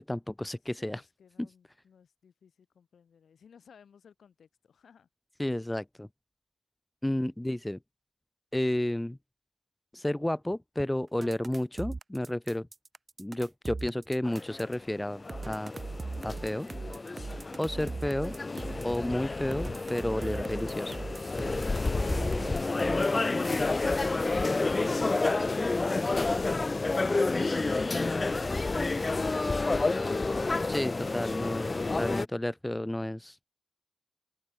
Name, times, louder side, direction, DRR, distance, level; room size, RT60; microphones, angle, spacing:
voice 1, 0.0-1.0 1.4-1.5 5.4-6.1 7.0-7.8 8.5-9.2 9.9-12.7 13.2-15.7 16.2-16.7 17.6-18.3 18.8-21.0 30.6-31.7 32.0-33.5, left 1 dB, 10° left, 0.3 m, -31 dB
voice 2, 0.7-5.1, left 7 dB, 75° left, 3.9 m, -59 dB
sound 1, 11.2-14.7 15.3-19.0 19.5-23.3, right 3 dB, 40° right, 2.0 m, -39 dB
sound 2, 14.2-32.3, left 3 dB, 35° left, 0.8 m, -30 dB
open air
cardioid pair, 50°, 0 cm